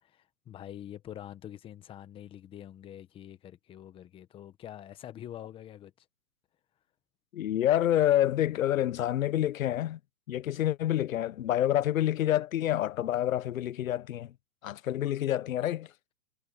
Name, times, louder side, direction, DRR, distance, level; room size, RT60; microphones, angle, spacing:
voice 1, 0.0-5.9, left 11 dB, 10° left, 1.2 m, -45 dB
voice 2, 7.3-10.0 10.3-14.3 14.6-15.9, left 12 dB, 55° left, 1.1 m, -27 dB
hypercardioid pair, 150°, 49 cm